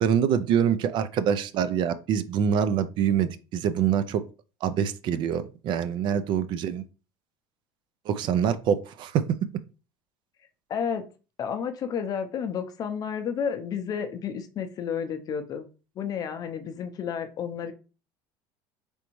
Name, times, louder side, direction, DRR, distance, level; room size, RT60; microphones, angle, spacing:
voice 1, 0.0-4.2 4.6-6.8 8.1-9.2, right 8 dB, 50° right, 12 dB, 0.4 m, -25 dB
voice 2, 10.7-11.0 11.4-15.7 16.0-17.7, left 7 dB, 35° left, 8 dB, 0.6 m, -31 dB
3.9 x 3.5 x 3.0 m, 0.34 s
cardioid pair, 135°, 10 cm